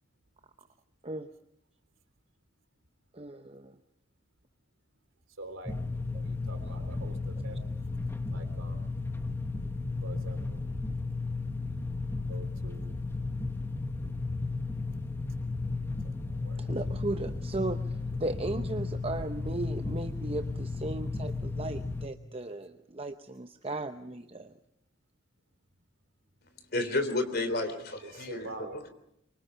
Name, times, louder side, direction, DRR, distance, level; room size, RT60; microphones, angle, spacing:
voice 1, 3.1-3.7 16.6-17.8 18.2-24.5, right 2 dB, 30° right, 7 dB, 0.8 m, -36 dB
voice 2, 5.4-5.7 6.2-7.7 8.3-8.9 10.0-10.6 12.3-13.0 16.2-16.7 28.0-28.8, right 1 dB, 75° right, 6 dB, 3.3 m, -45 dB
sound 1, 5.7-22.1, left 3 dB, 10° left, 1.0 m, -34 dB
voice 3, 26.7-28.5, left 2 dB, 50° left, 9 dB, 3.3 m, -31 dB
25.0 x 24.5 x 5.7 m, 0.79 s
head